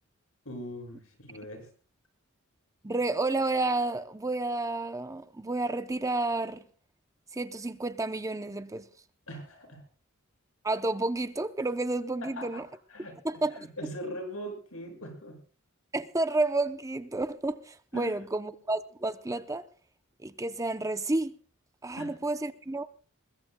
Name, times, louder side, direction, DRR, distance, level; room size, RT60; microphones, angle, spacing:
voice 1, 0.4-1.7 9.3-9.8 12.2-12.6 12.9-15.4 17.9-18.1 21.9-22.2, equal, 85° left, 6.3 m, -41 dB
voice 2, 2.8-6.6 7.3-8.9 10.6-12.7 13.2-13.7 15.9-19.6 20.2-21.3 21.8-22.9, right 2 dB, 15° right, 0.6 m, -30 dB
22.0 x 21.5 x 2.2 m
head